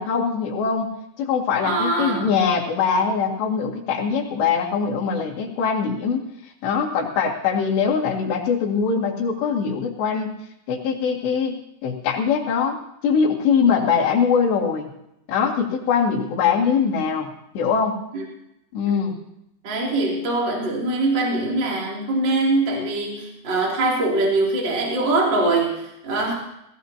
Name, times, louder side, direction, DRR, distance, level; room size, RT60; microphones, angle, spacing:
voice 1, 0.0-10.3 10.7-11.6 11.8-14.9 15.3-18.0 18.7-19.1, left 6 dB, 75° left, -2 dB, 4.4 m, -22 dB
voice 2, 1.6-2.3 18.1-18.2 19.6-26.3, right 2 dB, 30° right, -3 dB, 3.0 m, -22 dB
20.0 x 16.5 x 2.9 m, 0.81 s
omnidirectional pair, 5.1 m